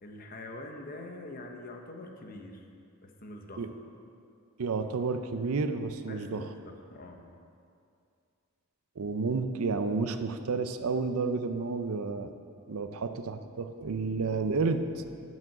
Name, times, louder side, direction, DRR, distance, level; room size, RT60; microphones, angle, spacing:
voice 1, 0.0-2.6 3.0-3.7 6.0-7.3, left 2 dB, 40° left, 3 dB, 0.8 m, -44 dB
voice 2, 4.6-6.5 9.0-12.3 12.7-15.1, right 4 dB, 75° right, 9 dB, 0.5 m, -31 dB
7.2 x 6.1 x 7.7 m, 2.4 s
head